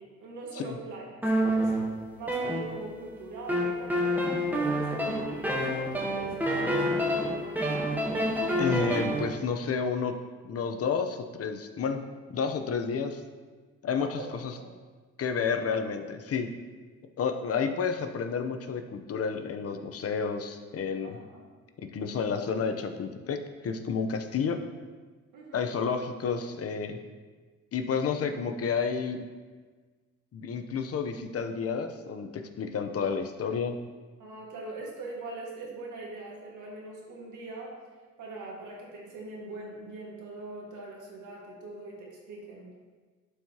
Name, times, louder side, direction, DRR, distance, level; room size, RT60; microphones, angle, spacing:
voice 1, 0.0-1.7 2.2-4.2 4.5-8.0 13.9-14.7 17.5-17.9 21.0-21.4 25.3-25.7 34.2-37.8 38.2-42.7, right 2 dB, 75° right, -2 dB, 1.9 m, -42 dB
sound 1, 1.2-3.1 3.5-9.3, equal, 5° right, 1.1 m, -28 dB
voice 2, 8.6-10.1 10.4-12.0 12.3-13.2 13.8-14.5 15.2-16.5 17.2-21.2 21.9-24.6 25.5-27.0 27.7-29.2 30.3-33.8, left 5 dB, 50° left, 6 dB, 0.8 m, -30 dB
11.5 x 4.8 x 2.9 m, 1.4 s
cardioid pair, 90°, 30 cm